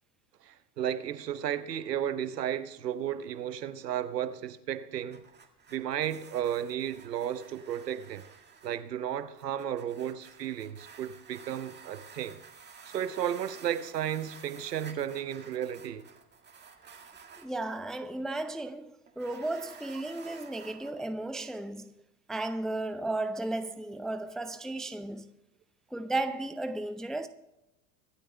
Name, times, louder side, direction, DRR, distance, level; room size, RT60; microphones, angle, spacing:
voice 1, 0.4-5.2 5.7-8.2 8.6-12.4 12.9-16.1, right 10 dB, 90° right, 1.0 m, -33 dB
sound 1, 4.8-17.5 19.1-20.9, right 6 dB, 20° right, 1.9 m, -52 dB
voice 2, 17.4-21.9 22.3-25.3 25.9-27.3, right 2 dB, ahead, 0.5 m, -34 dB
24.5 x 8.7 x 3.3 m
hypercardioid pair, 95°, 47 cm